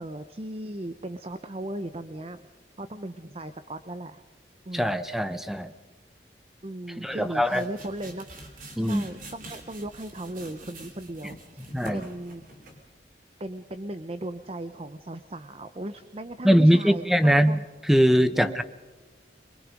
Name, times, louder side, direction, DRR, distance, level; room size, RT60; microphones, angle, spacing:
voice 1, 0.0-2.4 2.8-4.2 4.7-5.0 6.6-8.3 8.8-12.4 13.4-17.6 18.3-18.6, right 1 dB, 35° right, 10 dB, 0.7 m, -37 dB
voice 2, 4.7-5.7 7.0-7.6 8.8-9.0 11.7-12.0 16.4-17.6 17.9-18.6, equal, ahead, 11 dB, 0.8 m, -21 dB
sound 1, 7.2-12.9, right 1 dB, 50° right, 3.3 m, -45 dB
23.5 x 22.5 x 5.2 m, 1.3 s
head